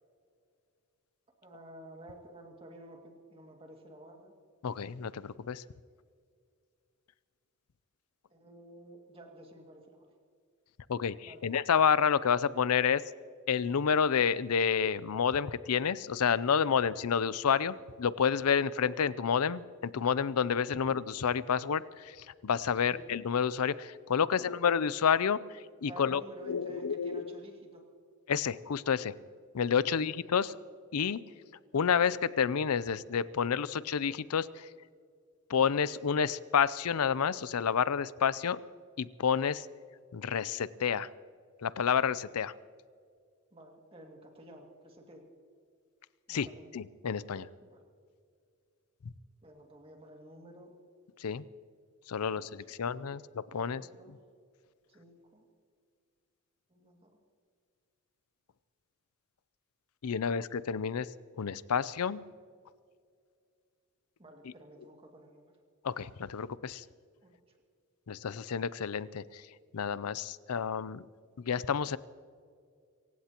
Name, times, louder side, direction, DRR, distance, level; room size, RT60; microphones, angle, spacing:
voice 1, 1.4-4.3 8.3-10.1 11.2-11.4 22.7-23.0 24.2-24.5 25.9-27.9 29.8-30.1 43.5-45.3 46.3-46.7 47.6-47.8 49.4-50.7 53.1-53.2 53.6-54.2 54.9-55.4 56.7-57.1 64.2-65.5 67.2-67.6, right 1 dB, 25° right, 1 dB, 2.2 m, -52 dB
voice 2, 4.6-5.6 10.9-13.0 13.5-27.2 28.3-29.1 29.5-30.6 30.9-31.2 31.7-34.7 35.5-38.6 39.0-39.7 40.1-41.1 41.6-42.5 46.3-46.5 46.7-47.5 51.2-51.4 52.1-53.9 60.0-61.1 61.4-62.2 65.8-66.8 68.1-69.4 69.7-71.0 71.4-72.0, left 7 dB, 85° left, 17 dB, 0.5 m, -29 dB
26.0 x 16.0 x 3.0 m, 2.2 s
head